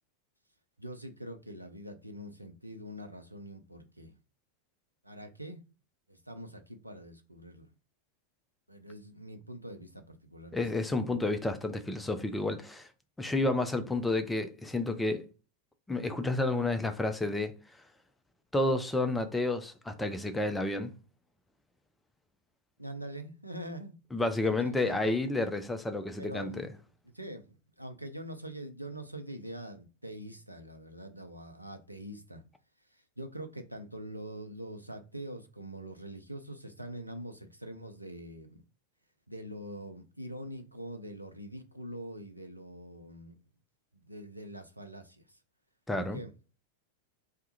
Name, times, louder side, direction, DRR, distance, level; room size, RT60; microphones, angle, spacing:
voice 1, 0.8-4.1 5.0-5.6 6.1-7.7 8.7-10.6 11.0-11.2 22.8-24.0 24.4-25.2 26.2-32.4 32.9-38.6 39.3-43.3 43.9-45.4 46.0-46.3, right 1 dB, 90° right, 0.4 m, -44 dB
voice 2, 10.5-12.9 13.2-15.2 15.9-17.5 18.5-20.9 24.1-26.5 45.9-46.2, left 2 dB, 10° left, 0.3 m, -30 dB
2.2 x 2.0 x 2.8 m
figure-of-eight pair, 90°, 0 cm